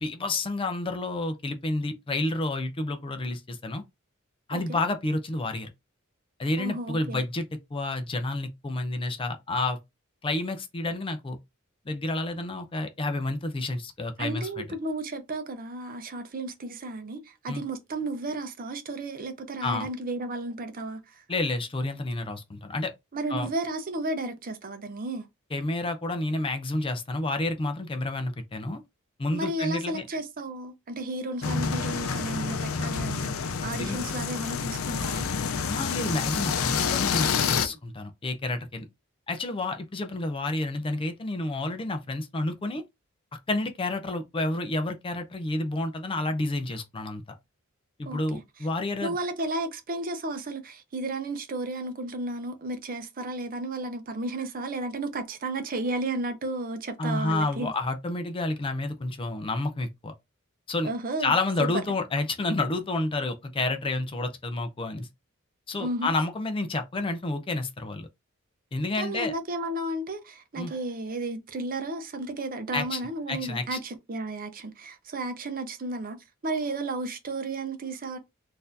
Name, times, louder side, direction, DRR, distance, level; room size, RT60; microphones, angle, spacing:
voice 1, 0.0-3.8 4.5-5.7 6.4-7.5 7.7-9.8 10.2-11.4 11.9-14.6 17.5-17.6 19.6-19.9 21.3-22.9 23.3-23.5 25.5-28.8 29.2-30.0 33.8-34.0 35.7-38.9 39.3-42.8 43.5-47.2 48.0-49.2 57.0-60.1 60.7-60.9 61.2-65.1 65.7-68.1 68.7-69.3 70.6-70.7 72.7-73.0 73.3-73.8, left 2 dB, 25° left, 0.4 m, -30 dB
voice 2, 4.5-4.8 6.6-7.2 14.2-21.2 23.1-25.3 29.3-33.3 33.6-35.3 48.1-48.4 49.0-57.7 60.8-61.3 61.6-61.8 65.8-66.1 69.0-76.2 76.4-78.2, right 2 dB, 45° right, 0.6 m, -33 dB
sound 1, 31.4-37.7, left 6 dB, 80° left, 0.5 m, -28 dB
4.0 x 2.6 x 2.6 m
head